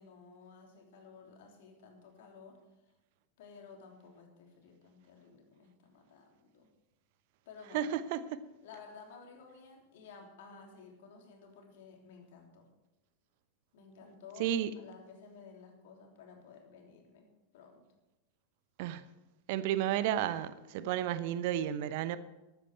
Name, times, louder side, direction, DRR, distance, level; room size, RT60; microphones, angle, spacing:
voice 1, 0.0-2.9 3.4-6.7 7.4-7.8 8.6-12.7 13.7-17.9, left 5 dB, 55° left, 2 dB, 3.3 m, -54 dB
voice 2, 7.7-8.4 14.4-14.7 18.8-19.0 19.5-22.2, right 11 dB, 50° right, 14 dB, 0.9 m, -32 dB
14.0 x 13.0 x 4.7 m, 1.0 s
figure-of-eight pair, 90°, 0 cm